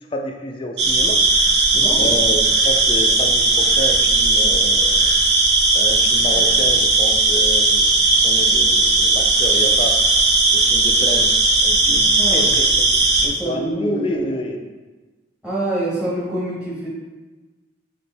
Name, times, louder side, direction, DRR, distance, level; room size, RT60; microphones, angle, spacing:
voice 1, 0.1-1.2 2.0-5.1 5.7-7.8 8.2-10.0 10.5-14.6, left 1 dB, 30° left, 3 dB, 0.4 m, -29 dB
sound 1, 0.8-13.3, right 2 dB, 65° right, 0.6 m, -16 dB
voice 2, 1.7-2.2 11.7-12.5 13.2-14.2 15.4-16.9, right 1 dB, 5° right, -7 dB, 1.1 m, -27 dB
4.2 x 3.0 x 3.3 m, 1.3 s
head